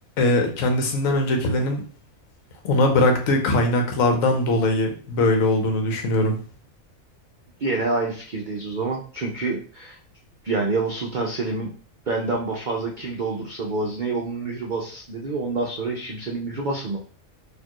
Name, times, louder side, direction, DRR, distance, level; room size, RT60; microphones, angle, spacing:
voice 1, 0.2-1.8 2.6-6.4, left 2 dB, 75° left, 3 dB, 1.2 m, -21 dB
voice 2, 7.6-10.0 10.4-11.7 12.1-17.0, right 3 dB, 55° right, 0 dB, 0.5 m, -27 dB
4.2 x 2.8 x 2.9 m, 0.42 s
omnidirectional pair, 1.4 m